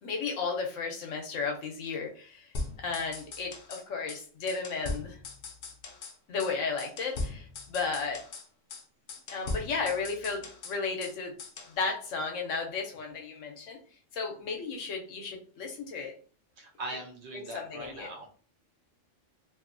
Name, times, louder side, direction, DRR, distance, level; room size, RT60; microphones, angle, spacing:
voice 1, 0.0-2.5 2.8-5.2 6.3-8.2 9.3-11.3 11.8-13.8 14.1-16.1 17.3-18.1, left 4 dB, 90° left, 2 dB, 1.1 m, -34 dB
sound 1, 2.5-3.8 4.1-4.2 4.5-6.1 6.4-6.5 6.8-8.4 8.7-8.8 9.1-11.1 11.4-11.7, left 3 dB, 60° left, 0.7 m, -39 dB
voice 2, 16.6-18.3, right 2 dB, 70° right, 2 dB, 0.9 m, -41 dB
2.7 x 2.6 x 2.5 m, 0.42 s
omnidirectional pair, 1.3 m